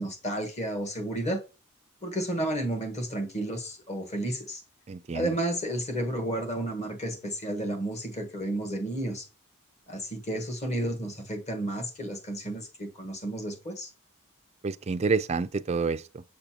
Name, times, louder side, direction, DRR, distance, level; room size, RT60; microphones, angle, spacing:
voice 1, 0.0-1.4 2.0-4.6 5.1-9.3 9.9-13.9, right 1 dB, 30° left, 1.4 m, -32 dB
voice 2, 4.9-5.3 14.6-16.2, right 4 dB, 30° right, 0.3 m, -28 dB
6.7 x 6.6 x 2.9 m
head